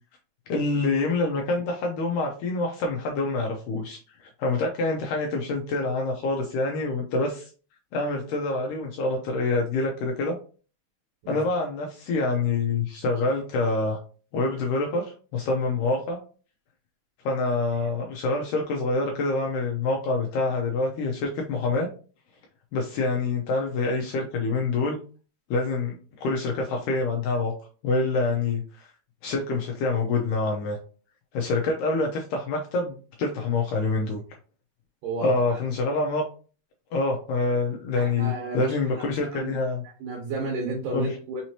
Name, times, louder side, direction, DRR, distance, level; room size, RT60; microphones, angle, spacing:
voice 1, 0.5-7.5 7.9-10.3 11.3-14.0 14.3-15.1 15.3-16.2 17.3-21.9 22.7-25.0 25.5-27.5 27.8-28.9 29.2-30.8 31.3-34.2 35.2-36.2 36.9-39.8 40.9-41.2, left 3 dB, 80° left, 0 dB, 1.8 m, -26 dB
voice 2, 35.0-35.6 38.0-38.8 39.3-39.5 40.0-41.4, right 3 dB, 65° right, -1 dB, 2.6 m, -32 dB
6.0 x 3.0 x 2.8 m, 0.38 s
omnidirectional pair, 4.5 m